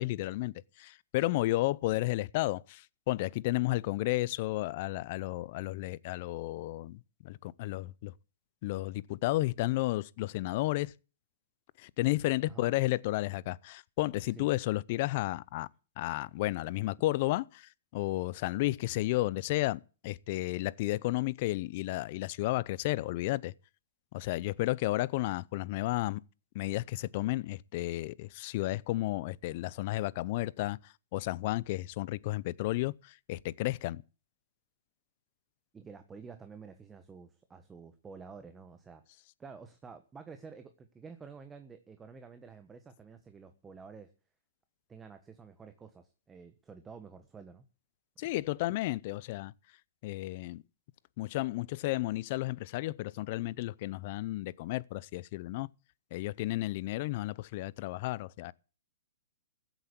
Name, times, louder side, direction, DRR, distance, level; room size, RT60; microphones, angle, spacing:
voice 1, 0.0-8.1 8.6-10.9 11.8-15.7 16.0-23.5 24.1-26.2 26.5-34.0 48.2-49.5 50.0-50.6 51.2-55.7 56.1-58.5, left 18 dB, 45° left, 0.6 m, -32 dB
voice 2, 35.7-39.0 39.4-44.1 44.9-47.6, right 5 dB, 15° right, 1.3 m, -50 dB
14.5 x 8.1 x 8.4 m
hypercardioid pair, 140°, 0 cm